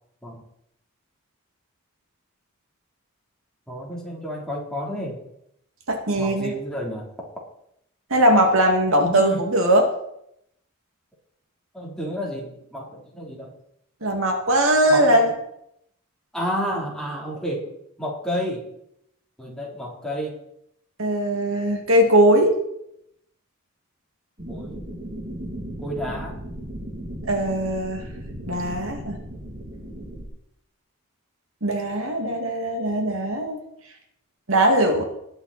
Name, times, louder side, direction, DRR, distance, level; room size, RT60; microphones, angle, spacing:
voice 1, 3.7-5.2 6.2-7.1 9.0-9.4 11.7-13.5 14.9-15.3 16.3-17.7 18.0-18.6 19.4-20.3 24.5-24.8 25.8-26.4, equal, 5° left, -4 dB, 3.5 m, -30 dB
voice 2, 5.9-6.5 8.1-9.8 14.0-15.3 21.0-22.6 27.3-28.0 28.5-29.2 31.6-33.6 34.5-35.0, right 1 dB, 70° right, 3 dB, 2.4 m, -20 dB
sound 1, 24.4-30.3, right 1 dB, 40° right, 2.8 m, -36 dB
20.0 x 8.1 x 4.3 m, 0.75 s
head